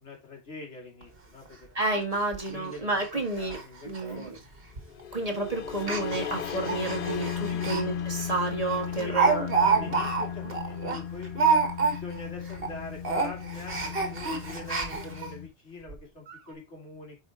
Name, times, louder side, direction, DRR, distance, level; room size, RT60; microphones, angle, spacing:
voice 1, 0.0-1.7 2.4-2.9 3.4-4.3 7.4-7.7 8.9-11.3 11.8-17.2, left 3 dB, 90° left, 0 dB, 2.8 m, -43 dB
Speech, 1.0-1.1 1.4-1.5 1.9-2.0 2.3-2.5 2.9-3.1 3.3-3.6 3.9-4.0 4.8-5.0 5.7-7.8 8.2-8.3 8.7-12.2 12.5-12.7 13.0-15.3 15.9-16.0 16.3-16.4, right 5 dB, 60° right, 1.7 m, -28 dB
voice 2, 1.7-3.6 3.8-4.3 5.1-9.5, right 2 dB, 35° right, 3 dB, 1.7 m, -30 dB
sound 1, 4.8-15.5, left 8 dB, 60° left, 0.7 m, -36 dB
8.2 x 4.9 x 3.5 m, 0.26 s
omnidirectional pair, 1.1 m